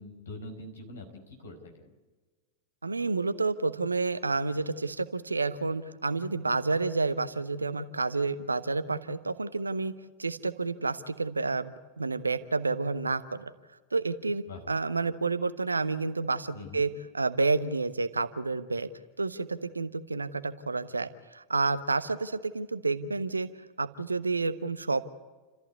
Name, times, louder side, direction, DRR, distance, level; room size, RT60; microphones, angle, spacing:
voice 1, 0.0-1.9 14.5-14.6 16.5-16.8, left 2 dB, 65° left, 4 dB, 4.8 m, -44 dB
voice 2, 2.8-11.7 12.0-13.5 13.9-16.9 17.1-18.9 19.2-23.5 23.8-25.0, right 3 dB, 80° right, 12 dB, 1.1 m, -30 dB
29.5 x 14.5 x 8.4 m, 1.3 s
figure-of-eight pair, 90°, 0 cm